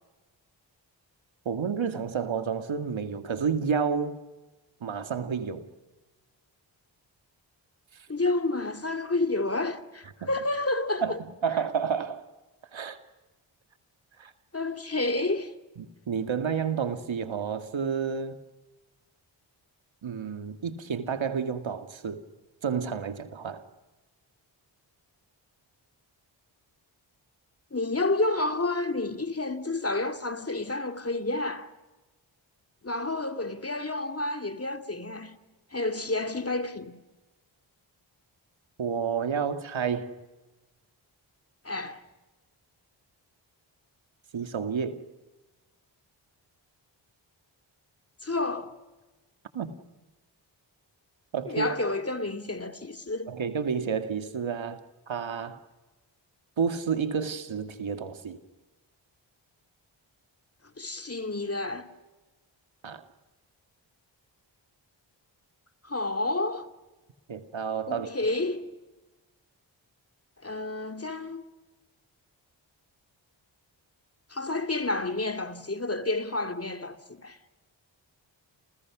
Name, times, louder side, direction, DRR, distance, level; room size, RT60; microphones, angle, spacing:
voice 1, 1.5-4.2 4.8-5.6 10.2-10.3 11.0-12.2 12.7-13.0 14.2-14.3 15.8-18.4 20.0-22.2 22.6-23.6 38.8-40.1 44.3-45.0 49.5-49.8 51.3-51.8 53.3-54.8 55.1-55.6 56.6-58.4 62.8-63.0 67.3-68.1, right 6 dB, 70° right, 2.2 m, -30 dB
voice 2, 8.1-11.2 14.5-15.5 27.7-31.7 32.8-35.4 35.7-37.0 41.6-42.0 48.2-48.7 51.5-53.4 60.8-61.9 65.8-66.7 67.9-68.7 70.4-71.4 74.3-77.4, left 2 dB, 30° left, 2.4 m, -30 dB
29.5 x 28.5 x 6.2 m
cardioid pair, 50°, 47 cm